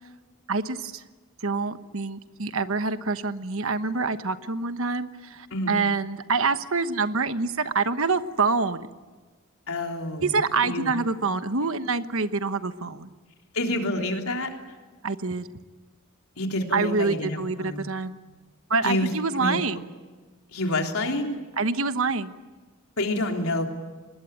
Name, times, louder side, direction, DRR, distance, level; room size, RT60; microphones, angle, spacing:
voice 1, 0.5-1.0 1.4-8.9 10.2-13.1 15.0-15.5 16.7-18.2 18.7-19.9 21.6-22.3, right 4 dB, 65° right, 11 dB, 1.2 m, -26 dB
voice 2, 9.7-10.4 10.6-10.9 13.5-14.5 16.4-17.9 18.8-19.1 19.4-19.6 20.5-21.4 23.0-23.7, left 1 dB, 75° left, 2 dB, 3.5 m, -28 dB
25.0 x 20.5 x 9.1 m, 1.3 s
head